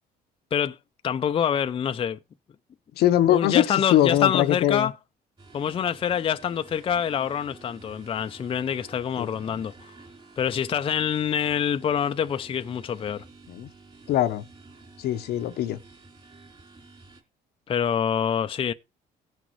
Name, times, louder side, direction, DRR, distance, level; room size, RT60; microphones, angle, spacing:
voice 1, 1.0-2.2 3.3-4.9 5.5-9.7 10.4-13.2 17.7-18.7, left 8 dB, 35° left, 0.5 m, -26 dB
voice 2, 3.0-3.6 3.9-4.9 9.2-9.3 13.5-13.7 14.1-14.4 15.0-15.8, left 12 dB, 70° left, 0.8 m, -22 dB
sound 1, 5.4-17.2, right 3 dB, 30° right, 3.7 m, -50 dB
17.0 x 6.2 x 3.1 m
cardioid pair, 110°, 17 cm